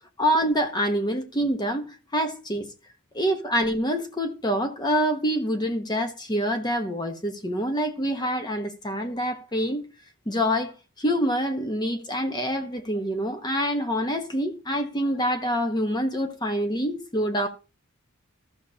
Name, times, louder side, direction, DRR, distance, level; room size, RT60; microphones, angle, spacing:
voice 1, 0.2-2.7 3.1-9.8 10.3-17.5, equal, 20° left, 1.1 m, -26 dB
15.0 x 6.5 x 2.8 m
head